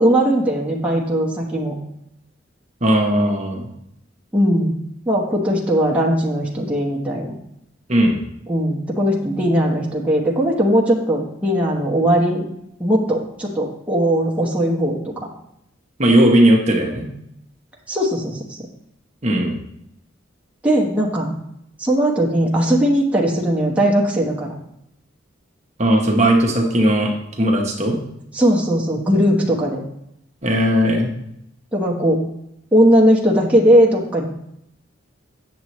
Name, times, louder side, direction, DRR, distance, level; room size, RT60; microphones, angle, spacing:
voice 1, 0.0-1.7 4.3-4.7 5.1-7.3 8.5-12.5 12.8-15.1 17.9-18.6 20.6-21.3 21.8-24.5 28.3-29.8 31.7-32.2 32.7-34.3, equal, 5° right, -3 dB, 1.1 m, -18 dB
voice 2, 2.8-3.7 7.9-8.2 16.0-17.1 19.2-19.5 25.8-27.1 27.4-28.0 30.4-31.1, right 1 dB, 35° right, 0 dB, 1.0 m, -17 dB
8.2 x 6.9 x 3.1 m, 0.78 s
head